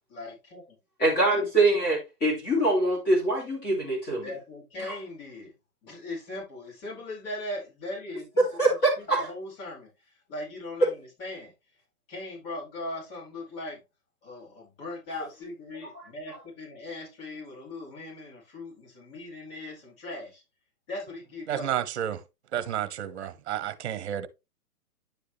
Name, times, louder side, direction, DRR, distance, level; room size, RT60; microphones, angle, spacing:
voice 1, 0.1-0.8 4.2-5.5 5.8-11.5 12.1-13.8 14.2-20.4 20.9-21.8, left 2 dB, 40° left, 4.8 m, -39 dB
voice 2, 1.0-4.3 4.8-4.9 8.4-9.3 15.9-16.0, right 2 dB, 20° left, 2.7 m, -24 dB
voice 3, 21.5-22.2 22.5-24.3, right 10 dB, 45° right, 1.1 m, -31 dB
10.5 x 4.9 x 3.1 m
hypercardioid pair, 145°, 46 cm